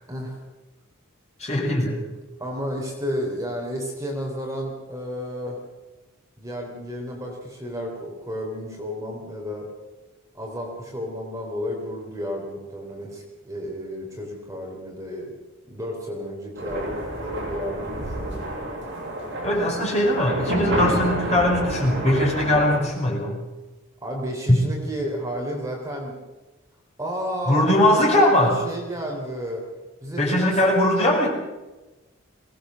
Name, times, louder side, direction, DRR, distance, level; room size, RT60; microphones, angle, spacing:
voice 1, 0.1-0.4 1.4-1.6 2.4-5.6 6.4-9.7 10.3-15.4 15.7-18.5 24.0-26.2 27.0-29.6 30.0-31.2, equal, 15° right, -1 dB, 3.7 m, -32 dB
voice 2, 1.4-2.0 19.4-23.4 24.5-24.6 27.5-28.6 30.2-31.3, left 1 dB, 30° left, -2 dB, 6.1 m, -20 dB
sound 1, 16.5-22.8, right 1 dB, 55° right, 7.7 m, -29 dB
22.5 x 18.5 x 6.5 m, 1.1 s
head